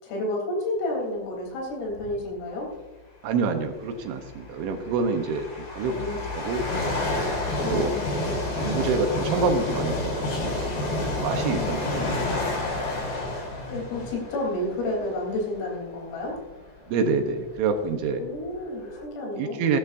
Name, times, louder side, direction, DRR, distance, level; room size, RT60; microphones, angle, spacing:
voice 1, 0.0-2.7 5.9-6.2 7.6-8.0 11.6-12.1 13.7-16.4 18.2-19.6, left 1 dB, 85° left, -1 dB, 6.3 m, -31 dB
sound 1, 1.9-2.2 3.3-3.4 4.2-15.6 16.2-16.4 17.2-17.3 17.5-19.0, left 2 dB, 55° left, 5.4 m, -29 dB
voice 2, 3.2-6.0 6.3-6.7 7.6-7.9 8.6-10.7 11.0-12.1 16.9-18.2 19.4-19.8, right 4 dB, 75° right, 6 dB, 3.2 m, -27 dB
17.0 x 11.5 x 2.6 m, 1.2 s
omnidirectional pair, 5.8 m